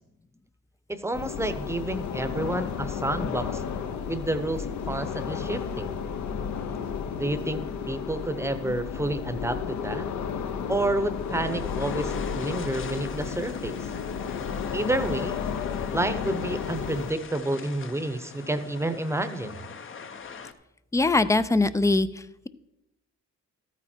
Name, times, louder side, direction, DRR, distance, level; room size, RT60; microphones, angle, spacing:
voice 1, 0.9-3.6 4.1-5.9 7.2-10.1 10.7-13.9 14.7-15.4 15.9-19.6, right 2 dB, 10° right, 11 dB, 0.9 m, -30 dB
sound 1, 1.1-17.1, left 7 dB, 65° left, 1.0 m, -32 dB
sound 2, 11.1-20.5, left 6 dB, 40° left, 0.8 m, -42 dB
voice 2, 20.9-22.5, left 2 dB, 10° left, 14 dB, 0.5 m, -22 dB
13.0 x 9.1 x 4.4 m, 0.91 s
cardioid pair, 90°, 30 cm